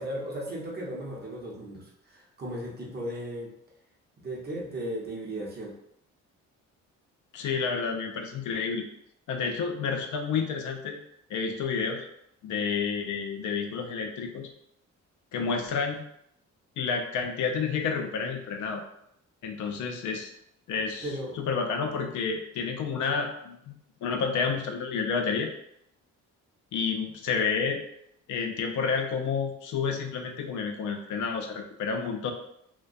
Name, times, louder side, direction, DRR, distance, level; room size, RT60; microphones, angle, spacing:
voice 1, 0.0-3.5 4.2-5.7 21.0-21.4, right 1 dB, 35° right, -2 dB, 0.7 m, -36 dB
voice 2, 7.3-8.9 9.3-11.0 11.3-12.1 12.4-14.5 15.3-16.0 16.8-18.8 19.4-20.3 20.7-21.1 21.4-23.7 24.0-25.5 26.7-27.8 28.3-32.3, left 5 dB, 75° left, 3 dB, 0.5 m, -30 dB
2.2 x 2.1 x 2.5 m, 0.74 s
cardioid pair, 90°, 30 cm